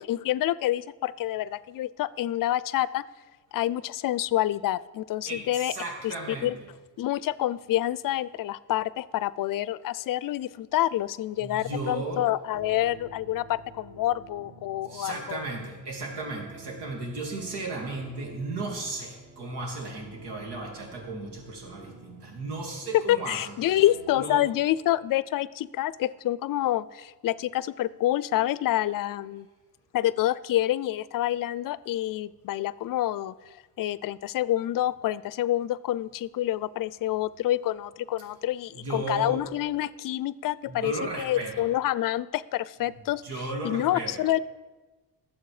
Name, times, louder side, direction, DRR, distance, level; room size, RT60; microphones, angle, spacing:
voice 1, 0.1-3.0 3.5-5.7 6.0-6.5 7.0-15.4 22.9-29.5 29.9-43.2 43.6-44.4, left 13 dB, 60° left, 19 dB, 0.5 m, -27 dB
voice 2, 5.3-6.5 11.4-12.3 14.9-23.8 24.2-24.4 38.7-39.4 40.7-41.7 43.2-44.1, right 2 dB, 85° right, 1 dB, 2.7 m, -35 dB
sound 1, 12.5-24.3, right 2 dB, 30° right, 1.5 m, -50 dB
19.0 x 7.6 x 4.9 m, 1.2 s
cardioid pair, 145°, 39 cm